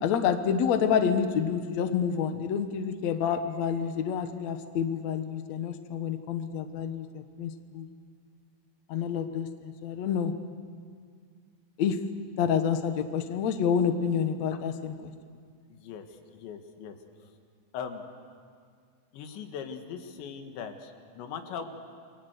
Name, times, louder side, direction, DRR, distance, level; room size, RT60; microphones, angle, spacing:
voice 1, 0.0-7.9 8.9-10.3 11.8-12.0 12.4-15.1, left 7 dB, 70° left, 8 dB, 1.7 m, -28 dB
voice 2, 15.7-16.0 16.3-17.0 17.7-18.0 19.1-21.8, left 7 dB, 85° left, 6 dB, 4.0 m, -39 dB
30.0 x 23.0 x 8.2 m, 2.1 s
omnidirectional pair, 5.1 m